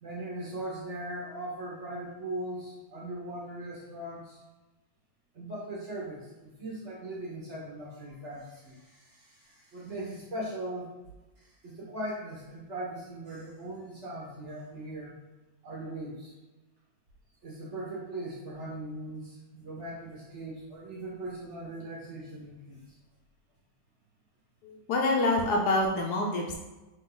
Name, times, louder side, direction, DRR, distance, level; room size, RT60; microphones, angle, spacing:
voice 1, 0.0-4.4 5.3-10.9 11.4-15.1 15.6-16.3 17.4-22.8, right 1 dB, 45° right, -5 dB, 1.2 m, -39 dB
voice 2, 24.6-26.6, left 2 dB, 70° left, 1 dB, 1.1 m, -26 dB
3.8 x 2.7 x 3.8 m, 1.1 s
omnidirectional pair, 1.9 m